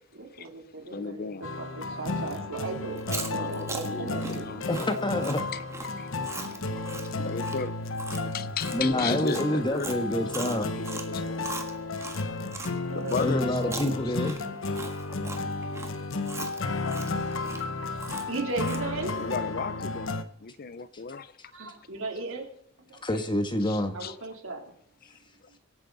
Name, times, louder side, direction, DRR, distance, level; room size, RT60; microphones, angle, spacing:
voice 1, 0.1-1.3 1.6-4.6 12.5-13.2 18.3-19.2 21.5-22.5 22.8-23.0 23.9-24.6, right 2 dB, 70° right, 3.2 m, -36 dB
voice 2, 0.9-1.5 1.9-2.0 3.3-4.9 5.5-5.6 6.0-6.1 7.0-7.8 8.2-10.0 10.4-11.5 12.9-14.3 16.8-17.2 19.2-21.3 23.6-24.2, left 4 dB, 50° left, 0.6 m, -36 dB
sound 1, 1.4-20.2, left 3 dB, 65° left, 1.0 m, -33 dB
Chewing mastication, 2.9-12.7 13.1-19.0, right 3 dB, 15° right, 1.6 m, -40 dB
voice 3, 4.7-5.4 8.7-10.7 13.2-14.4 23.0-23.9, left 1 dB, 25° left, 1.4 m, -27 dB
24.0 x 9.2 x 4.0 m
head